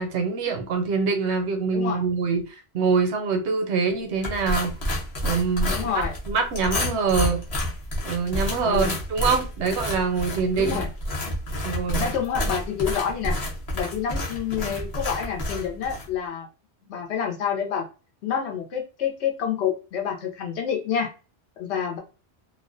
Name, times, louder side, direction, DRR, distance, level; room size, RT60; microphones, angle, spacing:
voice 1, 0.0-4.8 5.2-5.8 6.3-7.4 8.0-10.8 11.6-12.0, right 5 dB, 80° right, 0.9 m, -24 dB
voice 2, 1.7-2.0 5.7-6.1 8.6-9.0 10.6-10.9 12.0-13.4 13.7-16.5 16.9-17.9 18.2-21.1 21.6-22.0, left 7 dB, 80° left, 0.9 m, -28 dB
sound 1, 4.2-16.1, left 1 dB, 40° left, 0.7 m, -29 dB
2.4 x 2.1 x 2.4 m
omnidirectional pair, 1.1 m